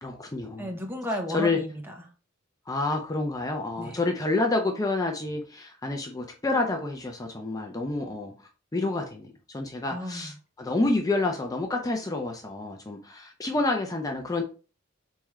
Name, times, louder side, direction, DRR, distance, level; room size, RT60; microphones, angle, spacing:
voice 1, 0.0-0.7 1.3-1.6 2.7-8.3 8.7-9.3 9.5-14.4, left 2 dB, 15° left, 0.5 m, -28 dB
voice 2, 0.6-2.0 3.8-4.0 9.9-10.3, equal, 10° right, 0.8 m, -33 dB
4.4 x 3.6 x 3.1 m
head